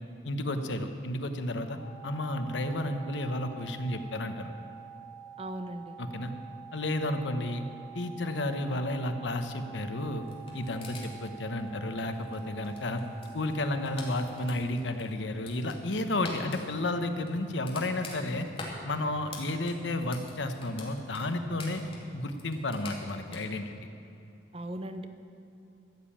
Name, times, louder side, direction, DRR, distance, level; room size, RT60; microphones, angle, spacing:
voice 1, 0.2-4.5 6.0-6.3 6.7-7.6 7.9-10.2 10.5-13.0 13.3-18.5 18.8-21.8 22.1-23.7, left 1 dB, 75° left, 8 dB, 1.0 m, -32 dB
sound 1, 1.8-14.4, right 8 dB, 80° right, 3.4 m, -48 dB
voice 2, 5.4-6.0 24.5-25.1, right 1 dB, 30° right, 8 dB, 0.7 m, -38 dB
sound 2, 10.2-23.4, left 2 dB, 30° left, 2.3 m, -47 dB
13.5 x 7.4 x 8.7 m, 2.8 s
head